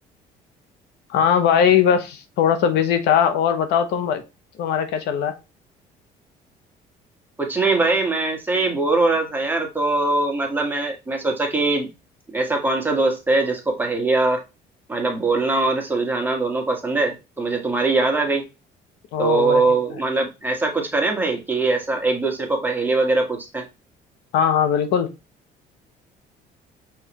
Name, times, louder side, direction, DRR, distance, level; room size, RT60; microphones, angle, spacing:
voice 1, 1.1-4.2 4.6-5.3 19.1-19.8 24.3-25.1, left 8 dB, 85° left, 0.9 m, -20 dB
voice 2, 7.4-11.9 12.3-14.4 14.9-18.4 19.2-23.6, right 3 dB, 10° right, 1.4 m, -22 dB
5.6 x 3.2 x 3.0 m
cardioid pair, 110°, 17 cm